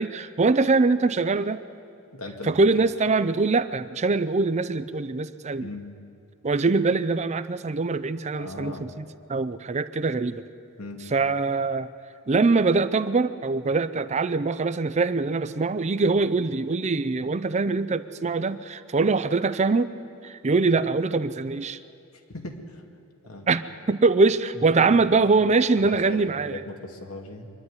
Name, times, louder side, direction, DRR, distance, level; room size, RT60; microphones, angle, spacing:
voice 1, 0.0-1.6 2.4-5.7 6.4-9.0 9.3-10.4 11.1-11.9 12.3-19.9 20.2-21.8 23.5-23.6 23.9-26.6, right 3 dB, 30° right, 14 dB, 0.5 m, -23 dB
voice 2, 2.1-2.6 5.6-5.9 8.3-8.9 10.8-11.0 22.1-22.8 23.2-23.5 24.6-24.9 25.8-27.5, left 2 dB, 85° left, 3 dB, 2.1 m, -38 dB
24.5 x 11.0 x 9.7 m, 2.5 s
head